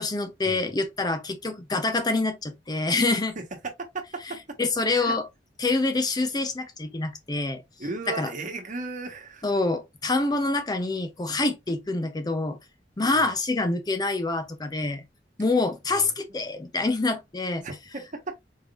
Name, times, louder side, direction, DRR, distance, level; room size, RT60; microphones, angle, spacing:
voice 1, 0.0-3.4 4.6-5.3 5.6-7.6 8.1-8.3 9.4-12.6 13.0-15.0 15.4-17.6, left 3 dB, 20° left, 0.6 m, -26 dB
voice 2, 3.8-4.4 4.9-5.2 5.7-5.8 7.8-9.5 13.1-13.3 15.9-16.1 17.6-18.4, right 3 dB, 45° right, 1.2 m, -36 dB
4.6 x 3.6 x 2.4 m
head